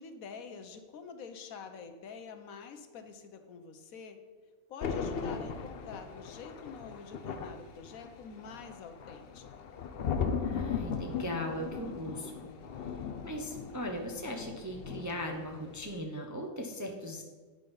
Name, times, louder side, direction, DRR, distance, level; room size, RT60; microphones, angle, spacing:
voice 1, 0.0-4.2 4.7-9.5 11.8-12.2, left 5 dB, 75° left, 7 dB, 1.2 m, -47 dB
Thunder, 4.8-15.4 15.7-16.0, left 6 dB, 55° left, 0.7 m, -38 dB
voice 2, 10.4-12.3 13.2-17.2, equal, 20° right, 1 dB, 0.5 m, -38 dB
8.9 x 5.3 x 5.4 m, 1.4 s
omnidirectional pair, 1.5 m